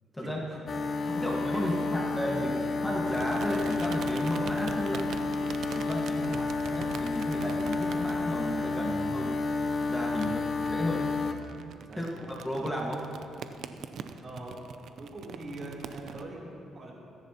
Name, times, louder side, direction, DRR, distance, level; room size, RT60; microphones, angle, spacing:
voice 1, 0.2-2.6 6.1-6.4 10.2-10.4 11.8-12.1 14.2-14.5 15.0-16.9, right 2 dB, 40° right, -4 dB, 3.2 m, -43 dB
sound 1, 0.7-11.4, left 3 dB, 40° left, 0.7 m, -31 dB
sound 2, 0.9-1.7 3.1-16.2, right 7 dB, 70° right, 0.6 m, -44 dB
voice 2, 1.1-2.5 2.8-5.0 5.7-9.4 9.9-11.1 11.9-13.0, equal, 10° left, -2 dB, 1.6 m, -33 dB
Bowed string instrument, 2.1-6.4, equal, 80° left, 1.6 m, -48 dB
21.5 x 10.5 x 2.9 m, 2.6 s
cardioid pair, 90°, 0 cm